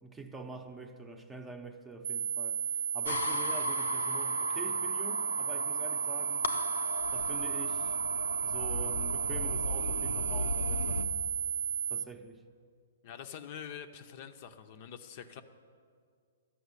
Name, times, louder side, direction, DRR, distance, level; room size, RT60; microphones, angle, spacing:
voice 1, 0.0-2.6 2.9-6.5 7.1-8.0 8.4-11.0 11.9-12.4, right 3 dB, 10° right, 5 dB, 0.8 m, -45 dB
sound 1, 2.0-12.0, right 8 dB, 60° right, 0.4 m, -33 dB
sound 2, 3.1-11.1, left 3 dB, 85° left, 0.7 m, -37 dB
voice 2, 13.0-15.4, left 8 dB, 45° left, 8 dB, 0.7 m, -45 dB
13.0 x 6.0 x 9.7 m, 2.1 s
hypercardioid pair, 140°, 0 cm